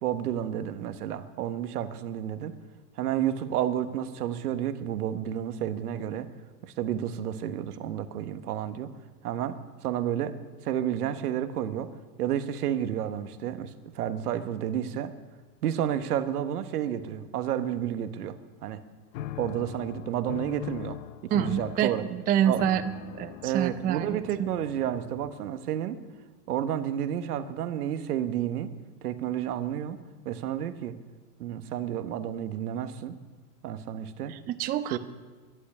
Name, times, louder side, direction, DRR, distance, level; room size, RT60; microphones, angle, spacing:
voice 1, 0.0-2.6 3.0-6.3 6.6-8.9 9.2-10.4 10.6-11.9 12.2-15.1 15.6-18.4 18.6-18.8 19.4-22.0 22.5-22.6 23.4-26.0 26.5-28.7 29.0-30.0 30.2-30.9 31.4-33.2 33.6-34.4 34.9-35.0, right 10 dB, 70° right, 10 dB, 1.4 m, -31 dB
sound 1, 19.1-25.6, left 13 dB, 55° left, 0.9 m, -41 dB
voice 2, 21.3-22.9 23.2-24.5 34.3-35.0, right 10 dB, 20° right, 11 dB, 0.4 m, -27 dB
12.0 x 11.0 x 9.8 m, 1.3 s
hypercardioid pair, 110°, 47 cm